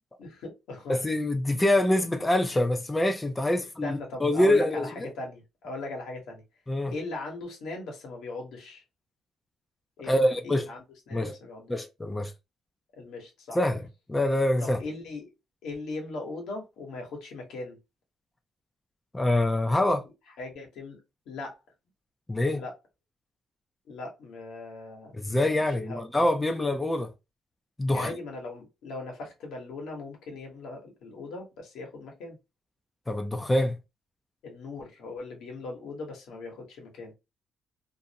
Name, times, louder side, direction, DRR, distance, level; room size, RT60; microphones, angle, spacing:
voice 1, 0.2-1.0 3.8-6.4 6.9-8.8 10.0-11.7 13.0-13.6 14.6-15.3 15.6-17.8 20.4-21.0 21.3-21.5 22.5-22.7 23.9-25.1 25.6-26.0 27.9-32.4 34.4-37.1, left 2 dB, 85° left, 1.1 m, -39 dB
voice 2, 0.9-5.1 6.7-6.9 10.1-10.7 11.1-11.4 11.7-12.3 13.5-13.8 14.1-14.8 19.1-20.0 22.3-22.6 25.1-27.1 27.8-28.1 33.1-33.8, left 1 dB, 15° left, 0.4 m, -25 dB
2.5 x 2.0 x 2.6 m
cardioid pair, 90°, 0 cm